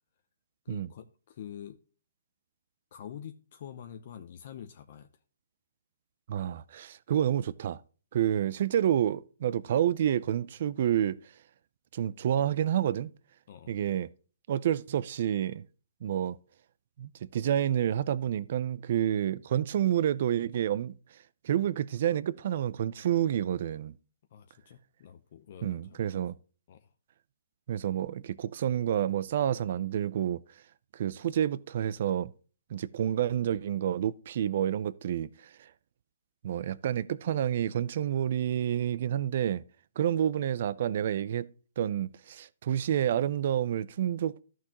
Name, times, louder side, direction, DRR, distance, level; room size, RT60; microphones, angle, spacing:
voice 1, 0.6-1.8 2.9-5.1 13.5-13.7 24.3-26.2 26.7-26.9, left 9 dB, 40° left, 0.7 m, -46 dB
voice 2, 6.3-7.8 8.1-11.2 11.9-13.1 13.7-14.1 14.5-15.6 16.0-16.4 17.0-21.2 21.4-23.9 25.6-26.3 27.7-30.4 30.9-32.3 32.7-35.7 36.4-39.6 40.0-41.5 41.8-44.4, right 10 dB, 45° right, 0.5 m, -29 dB
13.5 x 6.1 x 2.9 m
hypercardioid pair, 170°, 0 cm